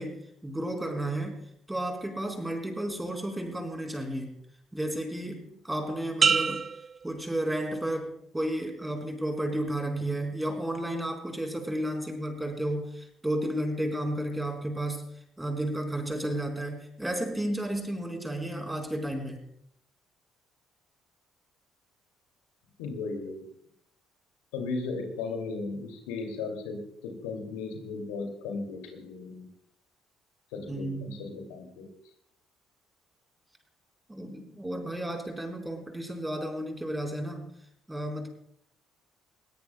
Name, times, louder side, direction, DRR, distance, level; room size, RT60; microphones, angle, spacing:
voice 1, 0.0-1.4 1.7-4.4 4.7-6.7 7.0-15.1 15.4-19.4 30.7-31.2 34.1-37.5 37.9-38.3, right 1 dB, 10° right, 2 dB, 4.1 m, -32 dB
sound 1, 6.2-8.0 8.5-8.9, right 6 dB, 40° right, 0.4 m, -28 dB
voice 2, 22.8-23.5 24.5-29.4 30.5-31.9, left 4 dB, 80° left, 3 dB, 2.5 m, -36 dB
20.0 x 17.0 x 2.3 m, 0.72 s
hypercardioid pair, 50°, 0 cm